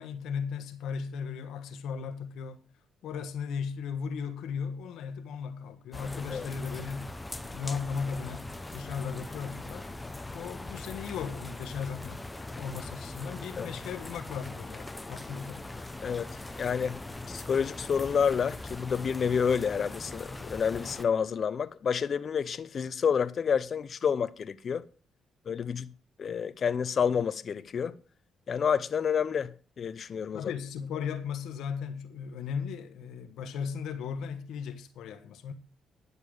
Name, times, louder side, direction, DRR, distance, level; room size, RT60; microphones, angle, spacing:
voice 1, 0.0-2.6 3.0-7.1 7.5-9.9 10.3-15.7 30.3-35.5, left 6 dB, 80° left, 1.3 m, -36 dB
sound 1, 5.9-21.0, left 2 dB, 10° left, 0.9 m, -41 dB
voice 2, 16.0-17.0 17.3-24.9 25.5-25.9 26.2-28.0 28.5-30.5, left 7 dB, 50° left, 0.7 m, -29 dB
11.0 x 6.8 x 6.4 m
cardioid pair, 90°, 0 cm